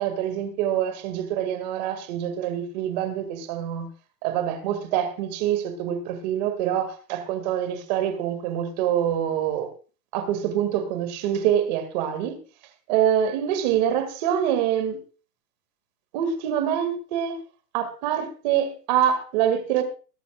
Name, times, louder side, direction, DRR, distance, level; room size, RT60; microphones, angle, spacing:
voice 1, 0.0-3.9 4.2-9.7 10.1-12.4 12.9-15.0 16.1-17.4 17.7-19.8, right 10 dB, 30° right, 2.0 m, -25 dB
22.0 x 11.0 x 2.3 m
supercardioid pair, 180°, 45 cm